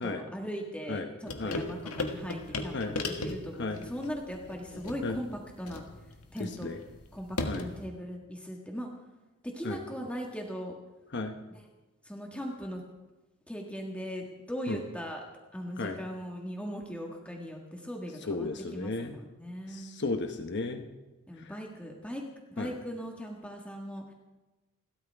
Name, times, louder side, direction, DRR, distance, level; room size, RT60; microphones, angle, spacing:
voice 1, 0.0-5.8 6.3-6.7 7.1-8.9 9.4-10.7 12.1-12.8 13.5-15.2 15.5-19.9 21.3-22.2 22.5-24.1, equal, 5° left, 0 dB, 1.7 m, -39 dB
sound 1, 1.3-7.8, left 2 dB, 85° left, 1.7 m, -37 dB
voice 2, 6.4-6.8 7.4-7.7 9.6-9.8 11.1-11.4 14.7-14.8 15.8-16.0 18.2-19.2 19.7-20.9 21.4-21.5 22.6-22.7, left 3 dB, 50° left, 5 dB, 1.1 m, -34 dB
29.0 x 13.0 x 3.5 m, 1.1 s
head